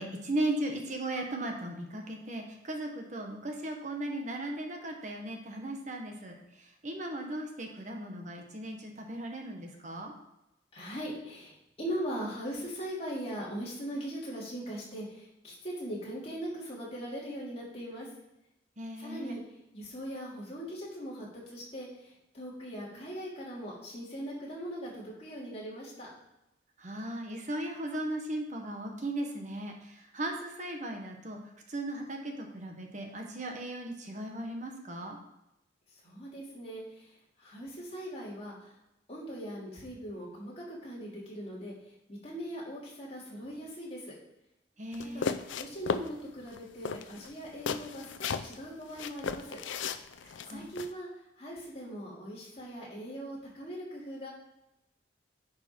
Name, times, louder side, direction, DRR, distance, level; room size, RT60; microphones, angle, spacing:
voice 1, 0.0-10.1 18.8-19.4 26.8-31.4 31.7-35.2 44.8-45.3 50.2-50.7, right 1 dB, 40° right, 2 dB, 1.3 m, -37 dB
voice 2, 10.7-18.1 19.0-19.4 19.7-26.1 35.9-38.7 39.1-41.7 42.1-44.1 45.0-45.3 45.6-49.6 50.4-51.1 51.4-54.3, equal, 35° left, -5 dB, 3.1 m, -40 dB
sound 1, 44.9-46.1 46.5-46.6 46.8-48.6 49.0-50.9, left 5 dB, 90° left, 0.5 m, -35 dB
10.0 x 5.3 x 4.6 m, 0.89 s
head